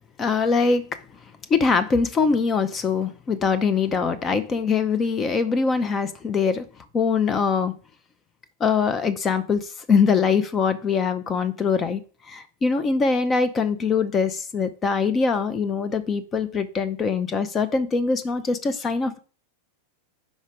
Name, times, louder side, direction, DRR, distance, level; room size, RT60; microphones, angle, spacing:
voice 1, 0.2-0.9 1.5-6.7 6.9-7.7 8.6-12.0 12.3-19.2, left 5 dB, 25° left, 11 dB, 0.6 m, -23 dB
5.2 x 4.9 x 5.2 m, 0.39 s
figure-of-eight pair, 90°, 0 cm